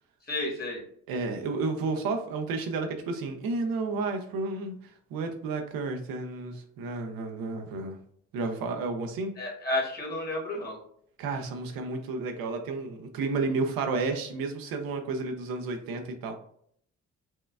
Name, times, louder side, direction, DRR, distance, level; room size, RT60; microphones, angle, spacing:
voice 1, 0.3-0.8 9.4-10.8, left 1 dB, 30° left, -2 dB, 1.4 m, -31 dB
voice 2, 1.1-8.0 8.3-9.3 11.2-16.4, right 3 dB, 85° right, 4 dB, 0.5 m, -31 dB
4.3 x 2.3 x 2.2 m, 0.65 s
cardioid pair, 75°, 34 cm